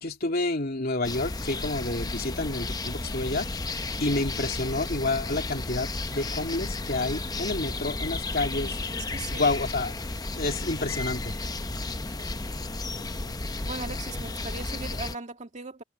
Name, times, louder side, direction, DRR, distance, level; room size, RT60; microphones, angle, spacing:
voice 1, 0.0-3.5 4.0-8.8 9.3-9.9 10.4-11.4 14.2-14.3, left 2 dB, 50° left, 2.8 m, -29 dB
sound 1, 1.0-15.1, left 2 dB, 20° left, 0.8 m, -33 dB
voice 2, 9.1-9.5 13.6-15.8, right 3 dB, 35° right, 1.9 m, -39 dB
head